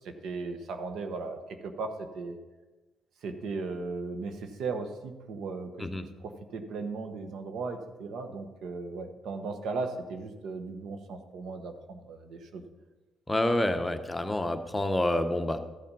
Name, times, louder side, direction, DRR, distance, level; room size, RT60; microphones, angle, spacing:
voice 1, 0.0-2.4 3.2-12.6, right 4 dB, 75° right, 8 dB, 1.1 m, -37 dB
voice 2, 13.3-15.6, left 1 dB, 15° left, 7 dB, 0.9 m, -28 dB
13.0 x 7.2 x 5.4 m, 1.2 s
cardioid pair, 90°, 0 cm